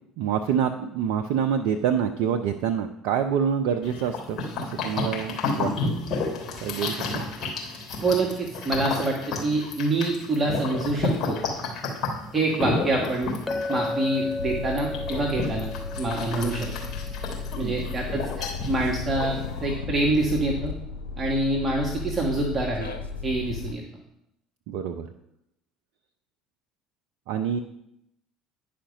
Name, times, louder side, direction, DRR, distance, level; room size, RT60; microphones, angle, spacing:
voice 1, 0.2-5.9 6.6-7.2 17.6-17.9 24.7-25.1 27.3-27.6, right 8 dB, 65° right, 6 dB, 0.5 m, -27 dB
sound 1, 3.8-19.6, left 3 dB, 40° left, 3.3 m, -31 dB
voice 2, 8.0-11.4 12.3-13.3 13.7-15.7 16.0-16.7 17.6-20.7 21.2-22.9 23.2-23.8, right 2 dB, 25° right, -2 dB, 1.6 m, -26 dB
Chink clink, 13.5-17.6, left 2 dB, 20° left, 0.5 m, -34 dB
sound 2, 14.4-23.7, left 4 dB, 85° left, 0.9 m, -34 dB
10.0 x 5.1 x 5.3 m, 0.82 s
hypercardioid pair, 60°, 0 cm